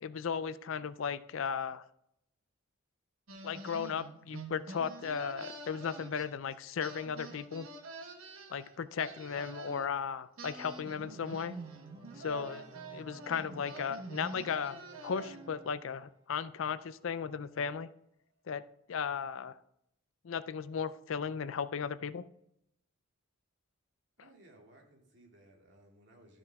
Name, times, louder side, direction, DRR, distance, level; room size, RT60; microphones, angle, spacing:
voice 1, 0.0-1.8 3.4-7.7 8.5-11.6 12.2-12.7 12.9-17.9 18.5-18.6 18.9-19.6 20.2-22.3, left 6 dB, 70° left, 15 dB, 0.4 m, -36 dB
sound 1, 3.3-6.5 6.8-9.9 10.4-15.6, right 3 dB, 85° right, 1.2 m, -46 dB
Organ, 10.5-16.2, equal, 20° right, 1.1 m, -56 dB
voice 2, 24.2-26.4, right 1 dB, 55° right, 0 dB, 2.3 m, -60 dB
12.5 x 6.1 x 3.5 m, 0.77 s
head